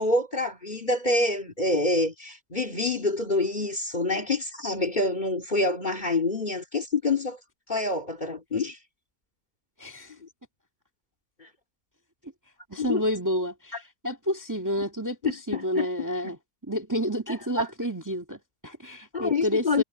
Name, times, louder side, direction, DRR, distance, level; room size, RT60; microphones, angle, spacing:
voice 1, 0.0-7.4 7.7-8.8 11.4-11.5 12.8-13.0 15.2-15.9 16.2-16.3 17.3-17.7 19.1-19.8, left 2 dB, 25° left, 2.5 m, -27 dB
voice 2, 9.8-10.1 12.7-16.4 16.7-19.8, equal, 10° right, 2.0 m, -30 dB
omnidirectional pair, 1.8 m